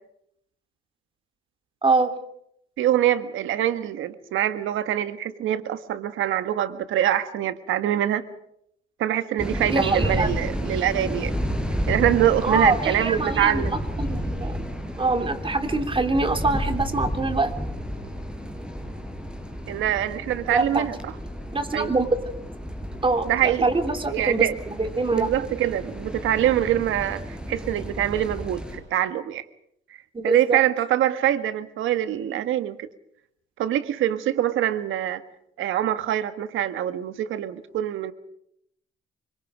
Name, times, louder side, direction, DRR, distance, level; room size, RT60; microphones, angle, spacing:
voice 1, 2.8-8.2 9.0-11.4 11.9-13.7 19.7-21.1 21.7-21.9 23.3-23.7 24.0-24.5 25.1-29.5 30.2-32.9 33.6-35.2 35.6-38.1, right 12 dB, 85° right, 11 dB, 1.7 m, -24 dB
sound 1, 9.4-28.8, equal, 5° right, 6.2 m, -31 dB
voice 2, 9.6-10.3 12.4-14.6 15.0-17.5 20.5-20.9 21.5-22.2 23.0-25.3 30.1-30.6, right 3 dB, 25° right, 6 dB, 3.2 m, -24 dB
26.5 x 24.5 x 5.1 m, 0.74 s
cardioid pair, 90°, 20 cm